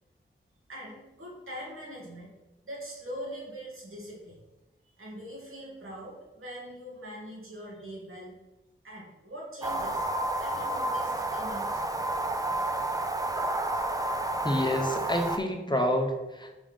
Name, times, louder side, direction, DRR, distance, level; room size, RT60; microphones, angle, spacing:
voice 1, 0.7-2.3 2.6-4.4 4.8-8.4 8.8-10.1 10.4-12.0, equal, 85° right, -5 dB, 2.0 m, -42 dB
sound 1, 9.6-15.4, right 1 dB, 15° right, 0.5 m, -30 dB
voice 2, 14.4-16.6, equal, 20° left, 3 dB, 0.8 m, -28 dB
5.1 x 3.7 x 5.1 m, 1.0 s
wide cardioid pair, 70°, 21 cm